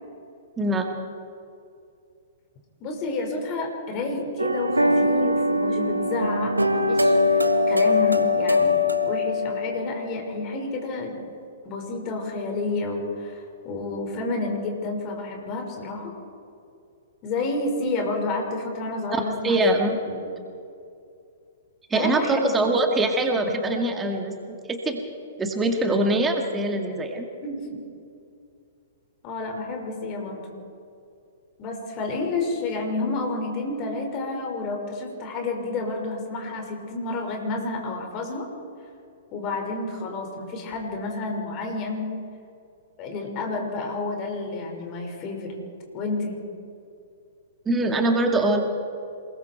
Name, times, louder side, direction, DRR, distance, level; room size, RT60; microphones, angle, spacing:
voice 1, 0.6-0.9 19.1-20.0 21.9-25.0 25.4-27.3 47.7-48.6, right 2 dB, 15° right, 3 dB, 2.1 m, -23 dB
voice 2, 2.8-8.8 9.1-11.2 11.6-16.1 17.2-20.2 21.9-22.5 27.4-27.8 29.2-30.6 31.6-38.5 39.3-42.1 43.0-45.6 45.9-46.3, left 3 dB, 30° left, 2 dB, 5.3 m, -30 dB
sound 1, 4.4-10.3, left 2 dB, 85° right, 1.2 m, -22 dB
27.5 x 20.5 x 4.6 m, 2.5 s
figure-of-eight pair, 110°, 0 cm